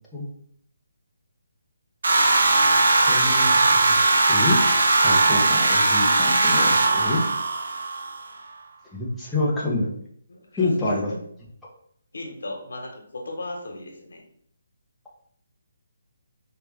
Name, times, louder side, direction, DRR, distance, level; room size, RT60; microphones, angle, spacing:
sound 1, 2.0-8.2, right 2 dB, 75° right, 0.8 m, -19 dB
voice 1, 3.1-4.6 5.0-7.2 8.9-9.9 10.6-11.1, left 2 dB, 5° left, -8 dB, 0.9 m, -27 dB
voice 2, 10.3-11.2 12.1-14.2, left 2 dB, 85° left, 2 dB, 1.3 m, -36 dB
4.7 x 3.2 x 3.4 m, 0.66 s
hypercardioid pair, 165°, 0 cm